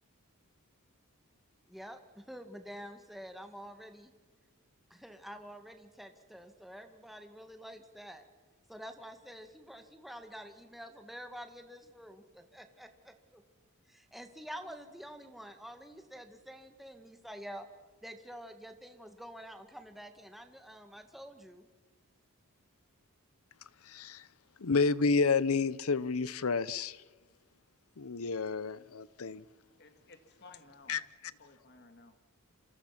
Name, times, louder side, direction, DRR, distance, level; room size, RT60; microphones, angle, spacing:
voice 1, 1.7-4.1 4.9-8.2 8.7-13.4 13.9-17.7 18.0-21.7, equal, ahead, 1.9 m, -48 dB
voice 2, 23.8-24.3 24.6-27.0 28.0-29.4 30.9-31.0, left 4 dB, 75° left, 0.8 m, -30 dB
voice 3, 29.8-31.0 31.4-32.2, left 3 dB, 50° left, 2.2 m, -56 dB
28.5 x 26.5 x 6.0 m
head